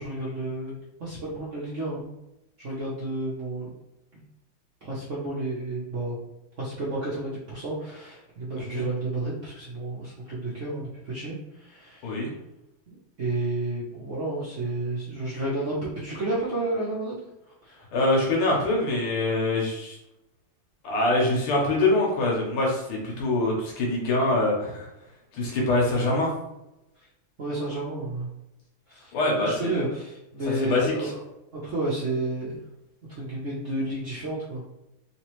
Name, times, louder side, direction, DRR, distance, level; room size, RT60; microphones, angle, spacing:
voice 1, 0.0-2.1 2.6-3.7 4.9-6.1 6.6-11.4 11.6-12.0 12.9-17.2 17.6-17.7 27.4-28.3 28.9-29.0 29.4-31.2 31.6-32.6 33.2-34.6, right 2 dB, 60° right, -7 dB, 0.8 m, -31 dB
voice 2, 17.9-20.0 20.8-24.9 25.3-26.3 29.1-29.8 30.5-31.1, left 2 dB, 80° left, -2 dB, 1.9 m, -24 dB
3.9 x 2.9 x 3.0 m, 0.90 s
omnidirectional pair, 2.4 m